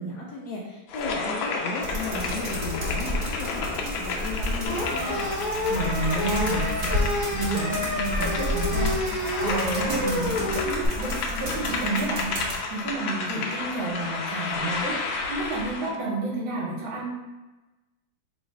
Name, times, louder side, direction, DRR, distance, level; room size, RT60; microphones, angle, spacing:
voice 1, 0.0-5.3, left 2 dB, 70° left, -2 dB, 1.0 m, -35 dB
sound 1, 0.9-16.0, left 4 dB, 90° left, 1.4 m, -32 dB
sound 2, 1.8-12.6, equal, 40° right, 1.1 m, -32 dB
sound 3, 4.7-10.9, left 1 dB, 50° left, 1.3 m, -29 dB
voice 2, 5.7-7.0 7.3-17.1, right 2 dB, 75° right, -4 dB, 1.6 m, -31 dB
3.1 x 3.0 x 4.6 m, 1.1 s
omnidirectional pair, 2.1 m